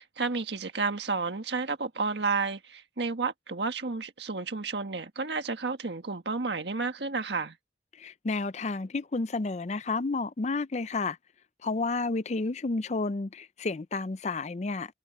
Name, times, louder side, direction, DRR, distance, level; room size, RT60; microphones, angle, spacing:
voice 1, 0.0-7.6, right 4 dB, 80° right, 1.6 m, -31 dB
voice 2, 7.9-11.2 11.6-14.9, left 3 dB, 40° left, 0.5 m, -31 dB
head